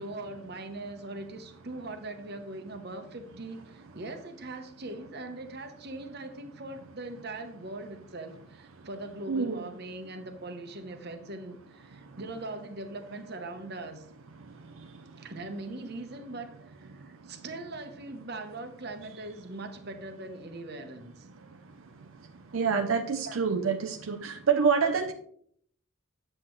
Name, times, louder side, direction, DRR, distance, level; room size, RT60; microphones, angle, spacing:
voice 1, 0.0-14.0 15.2-21.3 23.3-23.4, right 2 dB, 50° right, 7 dB, 1.0 m, -41 dB
voice 2, 9.3-9.6 22.5-25.1, right 6 dB, 80° right, 6 dB, 0.6 m, -26 dB
9.7 x 7.6 x 3.1 m, 0.64 s
head